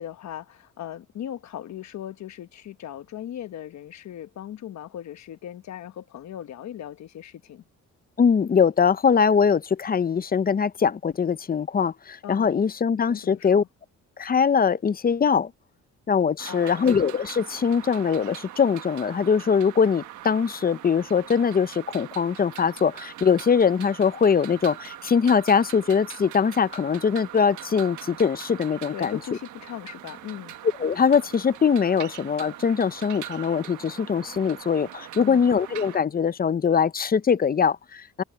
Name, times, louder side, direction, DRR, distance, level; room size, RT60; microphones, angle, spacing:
voice 1, 0.0-7.6 12.2-12.6 12.9-13.7 16.5-16.9 28.9-30.5 35.1-35.4, left 11 dB, 65° left, 1.3 m, -38 dB
voice 2, 8.2-13.6 14.2-15.5 16.1-29.2 30.8-38.2, left 6 dB, 30° left, 0.6 m, -22 dB
sound 1, 16.4-36.0, right 12 dB, 75° right, 1.4 m, -42 dB
cardioid pair, 90°, 30 cm